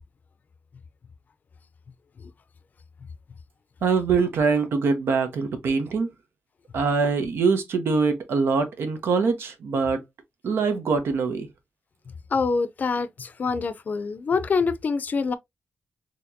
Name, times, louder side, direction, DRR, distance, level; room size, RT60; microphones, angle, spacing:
voice 1, 3.8-6.1 6.7-10.0 10.4-11.5, right 4 dB, 85° right, 0.9 m, -23 dB
voice 2, 12.3-15.3, left 4 dB, 45° left, 0.5 m, -25 dB
4.2 x 3.0 x 2.7 m
wide cardioid pair, 125°, 4 cm